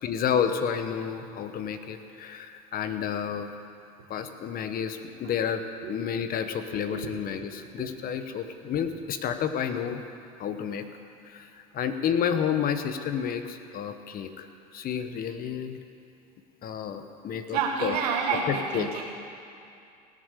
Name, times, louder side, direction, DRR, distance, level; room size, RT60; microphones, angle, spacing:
voice 1, 0.0-3.5 4.1-5.6 5.9-10.0 10.4-10.9 11.2-14.5 14.7-15.8 16.6-18.0 18.5-19.0, left 8 dB, 50° left, 9 dB, 1.1 m, -30 dB
voice 2, 6.7-7.1 7.4-7.5 17.5-19.0, right 5 dB, 85° right, 0 dB, 1.5 m, -29 dB
18.0 x 7.7 x 6.8 m, 2.5 s
supercardioid pair, 90°, 20 cm